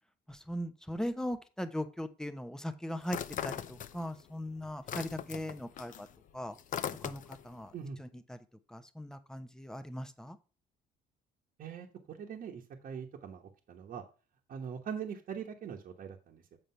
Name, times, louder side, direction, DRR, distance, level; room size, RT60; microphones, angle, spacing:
voice 1, 0.3-6.1 6.3-6.6 7.0-8.4 8.7-10.4, equal, 5° left, 9 dB, 0.9 m, -39 dB
sound 1, 3.0-4.3 4.6-7.5, left 9 dB, 50° left, 0.6 m, -40 dB
voice 2, 11.6-14.0 14.5-16.6, right 7 dB, 55° right, -1 dB, 1.2 m, -42 dB
7.7 x 5.1 x 5.6 m, 0.35 s
cardioid pair, 110°, 17 cm